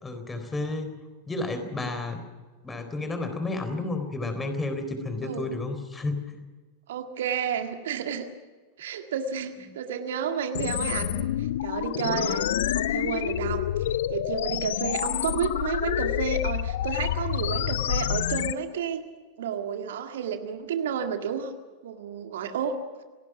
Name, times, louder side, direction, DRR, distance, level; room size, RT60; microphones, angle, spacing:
voice 1, 0.0-1.0 1.3-2.2 2.6-6.4, left 2 dB, 15° left, 7 dB, 4.0 m, -31 dB
voice 2, 6.9-8.3 8.8-19.0 19.4-21.5 21.8-22.8, right 7 dB, 60° right, 6 dB, 1.9 m, -31 dB
sound 1, 10.5-18.5, left 12 dB, 60° left, 0.7 m, -28 dB
28.5 x 18.5 x 6.0 m, 1.4 s
figure-of-eight pair, 90°, 0 cm